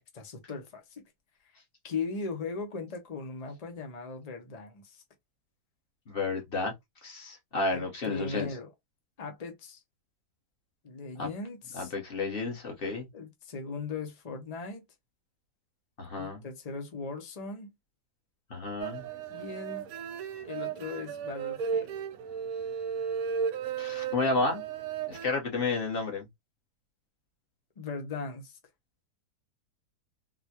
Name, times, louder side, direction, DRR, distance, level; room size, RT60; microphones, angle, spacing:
voice 1, 0.1-1.0 1.4-1.5 1.8-5.0 7.7-8.7 9.2-9.8 10.8-11.9 13.1-14.8 16.2-17.7 19.3-19.9 20.4-22.0 27.8-28.6, left 4 dB, 60° left, 0.4 m, -38 dB
voice 2, 6.1-6.7 7.0-8.5 11.2-11.3 11.7-13.1 16.0-16.4 18.5-19.0 23.8-24.6 25.1-26.3, left 3 dB, 35° left, 1.2 m, -31 dB
sound 1, 18.8-25.3, right 7 dB, 70° right, 0.9 m, -35 dB
4.1 x 2.2 x 2.8 m
omnidirectional pair, 1.8 m